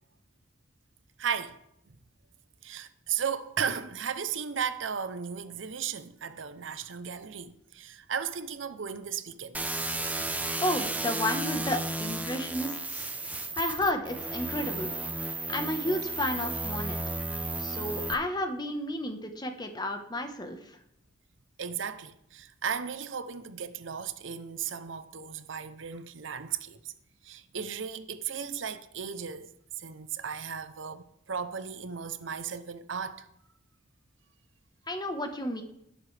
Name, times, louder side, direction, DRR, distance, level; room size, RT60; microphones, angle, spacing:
voice 1, 1.2-1.6 1.9-2.0 2.6-9.6 21.6-26.9 27.2-29.5 29.8-33.3, right 7 dB, 75° right, 0.7 m, -35 dB
sound 1, 9.5-18.1, right 2 dB, 10° right, 0.7 m, -33 dB
voice 2, 10.6-13.1 13.5-14.9 15.5-17.0 17.6-20.6 34.9-35.6, left 1 dB, 20° left, 1.2 m, -32 dB
18.0 x 7.6 x 3.4 m
head